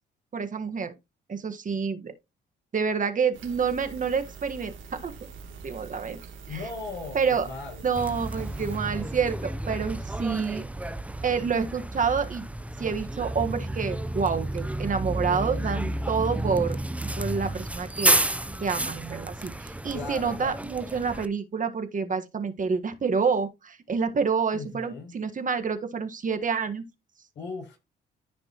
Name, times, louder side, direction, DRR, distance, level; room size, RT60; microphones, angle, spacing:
voice 1, 0.3-0.9 1.3-2.1 2.7-5.1 5.6-6.2 6.5-6.6 7.1-7.5 7.8-10.6 11.2-12.4 12.8-16.8 17.2-18.2 18.6-26.8, right 5 dB, 40° right, 1.5 m, -28 dB
sound 1, 3.3-8.8, right 5 dB, 75° right, 2.9 m, -44 dB
voice 2, 6.5-7.8 19.9-20.6 24.5-25.1 27.3-27.8, left 3 dB, 65° left, 6.7 m, -38 dB
Bus, 8.0-21.3, right 1 dB, 5° right, 0.7 m, -31 dB
14.0 x 5.2 x 3.0 m
cardioid pair, 90°, 20 cm